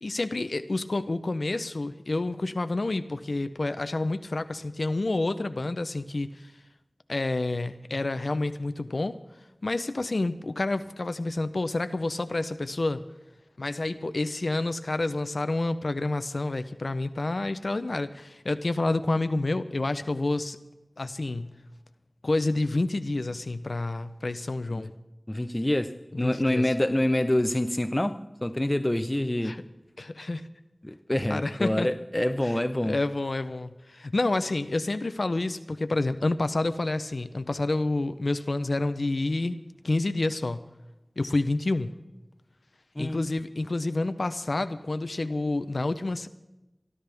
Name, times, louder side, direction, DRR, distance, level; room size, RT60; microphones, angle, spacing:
voice 1, 0.0-6.5 7.1-9.2 9.6-13.0 13.6-20.6 21.0-21.5 22.2-24.9 26.2-26.7 29.4-29.6 30.0-30.5 31.3-31.9 32.4-39.6 39.8-40.6 41.2-41.9 43.0-46.3, left 2 dB, 90° left, 0.6 m, -29 dB
voice 2, 25.3-29.6 30.8-33.0 43.0-43.3, left 1 dB, 25° left, 0.8 m, -27 dB
25.0 x 12.5 x 3.5 m
wide cardioid pair, 45°, 0 cm